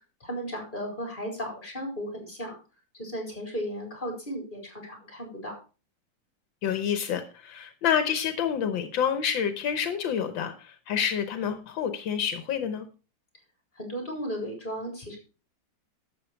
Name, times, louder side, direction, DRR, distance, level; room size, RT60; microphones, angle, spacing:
voice 1, 0.2-2.6 3.0-5.5 13.8-15.2, equal, 25° left, 2 dB, 4.4 m, -35 dB
voice 2, 6.6-12.8, left 8 dB, 80° left, 9 dB, 1.7 m, -28 dB
12.0 x 7.6 x 4.5 m, 0.34 s
omnidirectional pair, 2.1 m